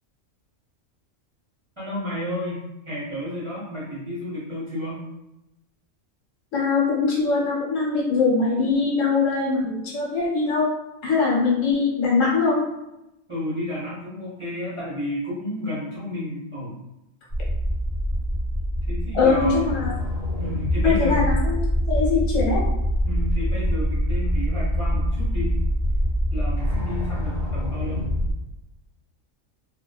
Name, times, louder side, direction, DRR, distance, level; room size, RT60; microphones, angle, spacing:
voice 1, 1.8-5.0 13.3-16.8 18.9-19.7 20.4-21.4 23.0-25.6 26.3-28.0, left 1 dB, 35° right, -9 dB, 0.5 m, -31 dB
voice 2, 6.5-10.7 11.0-12.6 19.1-19.9 20.8-21.6 21.9-22.6, left 4 dB, 75° left, -4 dB, 1.2 m, -22 dB
sound 1, 17.3-28.3, equal, 40° left, 0.9 m, -24 dB
2.4 x 2.2 x 2.2 m, 0.92 s
omnidirectional pair, 1.3 m